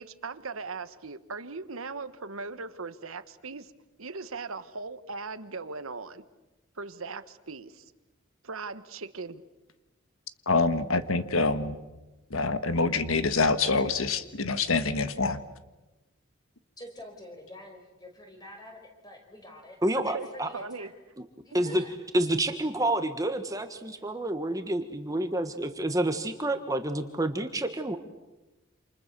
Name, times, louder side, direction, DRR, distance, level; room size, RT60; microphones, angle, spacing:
voice 1, 0.0-3.7 4.0-6.2 6.8-7.9 8.4-9.4 20.1-20.3 20.5-20.9 21.6-21.7, right 4 dB, 90° right, 12 dB, 1.4 m, -39 dB
voice 2, 10.5-11.8 12.3-15.4, left 3 dB, 85° left, 10 dB, 1.6 m, -26 dB
voice 3, 16.8-20.9 21.4-21.9, left 1 dB, 20° left, 4 dB, 5.0 m, -46 dB
voice 4, 19.8-20.5 21.5-21.8 22.1-28.0, right 1 dB, 15° right, 7 dB, 1.4 m, -28 dB
28.5 x 27.5 x 6.8 m, 1.1 s
head